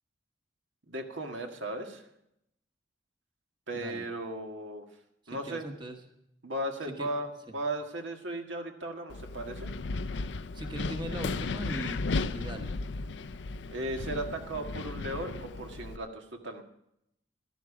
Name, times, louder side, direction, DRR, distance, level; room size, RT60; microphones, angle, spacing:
voice 1, 0.9-2.0 3.7-4.8 5.3-5.7 6.4-9.7 13.7-16.6, right 1 dB, 80° right, 3 dB, 1.8 m, -36 dB
voice 2, 3.7-4.1 5.2-6.0 7.0-7.1 10.5-12.7, right 1 dB, 25° right, 4 dB, 1.2 m, -40 dB
Wind, 9.1-16.0, left 3 dB, 65° left, 0.5 m, -35 dB
15.0 x 12.0 x 4.9 m, 0.79 s
head